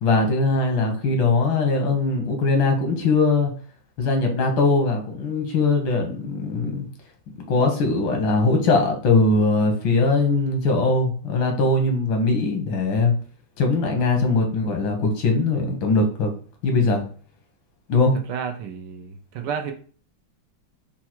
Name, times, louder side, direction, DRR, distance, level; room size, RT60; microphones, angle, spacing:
voice 1, 0.0-3.5 4.0-6.9 7.5-13.1 13.6-16.3 16.6-17.0 17.9-18.1, left 3 dB, 90° left, 4 dB, 1.8 m, -21 dB
voice 2, 18.3-19.7, right 7 dB, 70° right, 5 dB, 1.2 m, -31 dB
4.6 x 2.3 x 4.4 m, 0.43 s
omnidirectional pair, 2.1 m